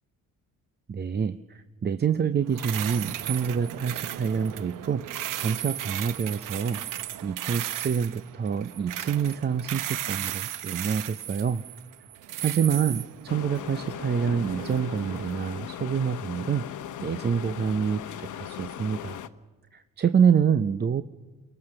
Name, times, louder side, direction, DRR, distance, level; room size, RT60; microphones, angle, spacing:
voice 1, 0.9-11.6 12.4-16.7 17.0-19.2 19.7-21.0, right 7 dB, 30° right, 11 dB, 0.6 m, -27 dB
sound 1, 2.5-15.3, right 12 dB, 70° right, 0.8 m, -36 dB
sound 2, 13.3-19.3, left 10 dB, 60° left, 1.0 m, -38 dB
23.0 x 18.5 x 6.6 m, 1.3 s
cardioid pair, 90°, 34 cm